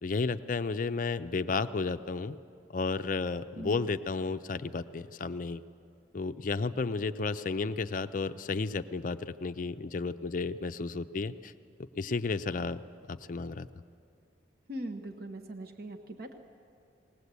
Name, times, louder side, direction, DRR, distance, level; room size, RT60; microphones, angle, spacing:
voice 1, 0.0-2.4 2.7-5.6 6.1-11.5 11.9-12.8 13.1-13.7, left 4 dB, 45° left, 10 dB, 0.4 m, -32 dB
voice 2, 14.7-16.4, right 1 dB, 50° right, 6 dB, 1.0 m, -40 dB
19.5 x 19.0 x 8.2 m, 2.5 s
head